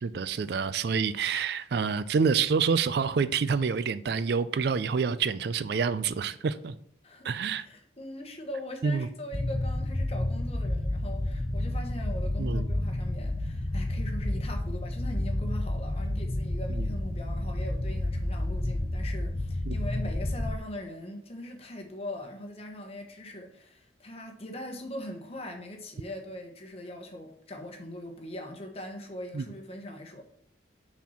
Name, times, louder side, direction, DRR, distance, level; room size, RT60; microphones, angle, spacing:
voice 1, 0.0-6.7 7.2-7.7 8.8-9.1 12.4-12.7 16.8-16.9 19.7-19.8 29.3-29.4, right 5 dB, 60° right, 0.4 m, -27 dB
voice 2, 7.0-30.2, left 1 dB, 35° left, 1.1 m, -41 dB
sound 1, 9.3-20.6, left 1 dB, 15° left, 0.4 m, -30 dB
5.9 x 4.4 x 5.7 m
head